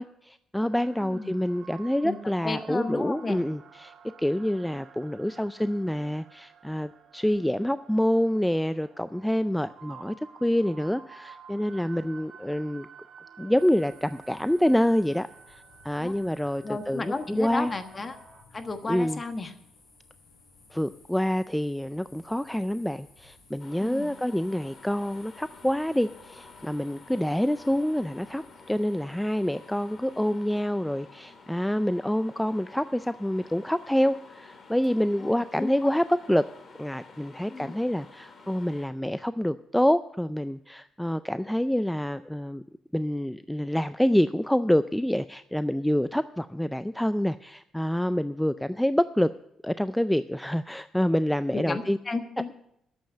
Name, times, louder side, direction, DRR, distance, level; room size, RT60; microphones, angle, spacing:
voice 1, 0.0-3.9 4.2-12.9 13.4-17.7 18.9-19.2 20.7-28.4 28.7-36.4 36.8-42.6 42.9-49.3 49.6-52.0, equal, 5° left, 13 dB, 0.3 m, -27 dB
sound 1, 0.6-18.4, right 7 dB, 60° right, 2.4 m, -52 dB
voice 2, 2.4-3.4 16.0-16.1 16.6-18.2 18.5-19.5 23.8-24.1 35.2-35.7 37.5-37.7 51.5-52.5, left 3 dB, 30° left, 8 dB, 1.3 m, -33 dB
sound 2, 13.6-30.6, left 3 dB, 65° left, 6.2 m, -57 dB
sound 3, 23.6-38.9, left 4 dB, 50° left, 2.3 m, -51 dB
10.5 x 7.7 x 8.6 m, 0.79 s
cardioid pair, 90°, 0 cm